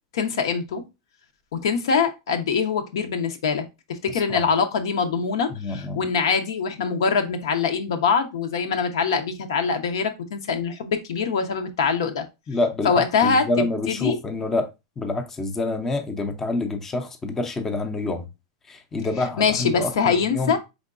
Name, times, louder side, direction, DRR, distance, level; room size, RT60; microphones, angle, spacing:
voice 1, 0.1-0.9 1.5-12.2 12.8-13.4 13.9-14.2 19.4-20.6, left 5 dB, 85° left, 0.8 m, -23 dB
voice 2, 4.1-4.4 5.5-6.0 12.5-18.3 18.7-20.6, left 2 dB, 15° left, 0.5 m, -27 dB
4.5 x 3.6 x 2.5 m
supercardioid pair, 155°, 2 cm